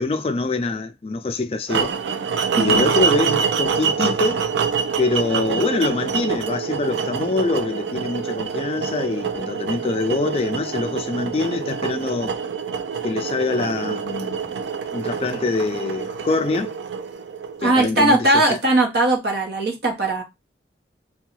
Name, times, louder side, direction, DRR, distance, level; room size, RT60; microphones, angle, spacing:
voice 1, 0.0-2.0 2.5-4.5 5.0-12.4 13.0-14.6 14.9-16.7 17.6-18.6, left 3 dB, 35° left, 0.3 m, -24 dB
sound 1, 1.7-17.8, right 6 dB, 90° right, 0.4 m, -25 dB
voice 2, 2.5-2.9 17.6-20.2, right 2 dB, 70° right, 0.9 m, -19 dB
2.6 x 2.2 x 3.0 m
head